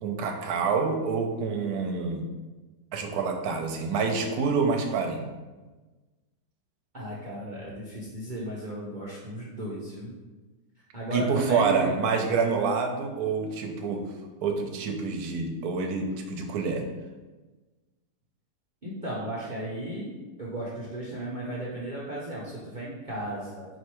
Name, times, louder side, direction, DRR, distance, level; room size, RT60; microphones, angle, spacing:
voice 1, 0.0-2.2 2.9-5.3 11.1-14.1 14.4-16.8, right 5 dB, 70° right, 3 dB, 1.0 m, -27 dB
voice 2, 6.9-10.1 10.9-11.9 18.8-23.7, right 1 dB, 50° right, -7 dB, 0.5 m, -35 dB
4.7 x 3.2 x 3.0 m, 1.2 s
omnidirectional pair, 1.8 m